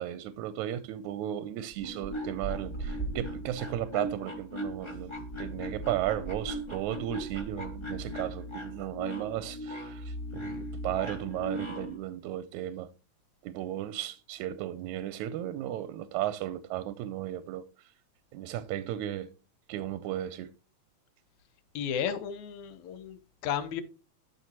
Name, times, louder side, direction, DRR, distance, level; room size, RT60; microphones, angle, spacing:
voice 1, 0.0-12.9 13.4-17.7 18.3-19.3 19.7-20.5, right 12 dB, 90° right, 2.0 m, -35 dB
sound 1, 1.7-12.0, right 1 dB, 25° left, 0.5 m, -38 dB
voice 2, 21.7-23.8, left 8 dB, 75° left, 2.3 m, -33 dB
12.5 x 6.1 x 2.9 m
omnidirectional pair, 3.3 m